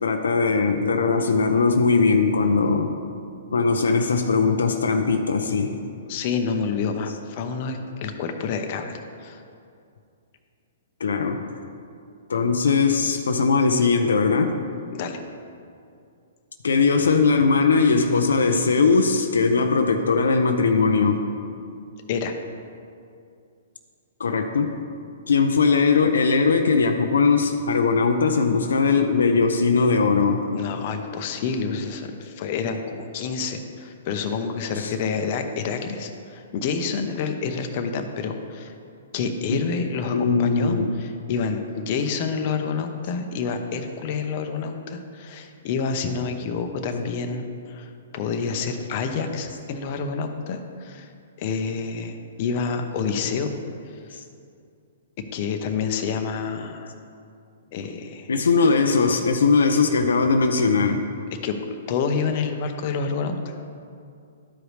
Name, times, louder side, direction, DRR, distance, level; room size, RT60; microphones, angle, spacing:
voice 1, 0.0-2.9 3.5-5.7 11.0-11.4 12.3-14.6 16.6-21.2 24.2-24.8 25.3-30.5 34.8-34.9 39.5-39.7 40.1-41.0 58.3-61.0, left 4 dB, 85° left, 5 dB, 0.6 m, -20 dB
voice 2, 6.1-9.4 14.9-15.2 22.1-22.3 30.5-38.7 39.1-51.1 51.4-53.5 53.9-54.2 55.3-56.9 57.7-58.3 61.4-63.6, left 5 dB, 45° left, 5 dB, 0.7 m, -28 dB
12.5 x 5.0 x 3.2 m, 2.4 s
hypercardioid pair, 135°, 0 cm